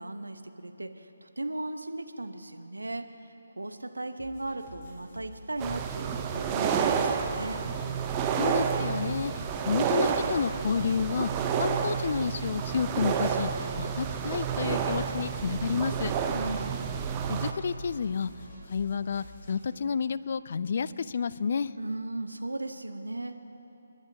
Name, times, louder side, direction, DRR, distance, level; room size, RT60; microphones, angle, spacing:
voice 1, 0.0-3.1 3.6-7.6 16.3-16.8 21.8-23.3, right 2 dB, 75° right, 7 dB, 0.8 m, -37 dB
sound 1, 4.2-19.7, left 1 dB, 20° left, 3.7 m, -49 dB
sound 2, 5.6-17.5, right 7 dB, 20° right, 0.6 m, -30 dB
voice 2, 8.4-11.3 11.6-16.1 17.3-18.3 18.7-21.7, left 6 dB, 45° left, 17 dB, 0.4 m, -30 dB
28.5 x 11.0 x 2.7 m, 2.8 s
figure-of-eight pair, 145°, 0 cm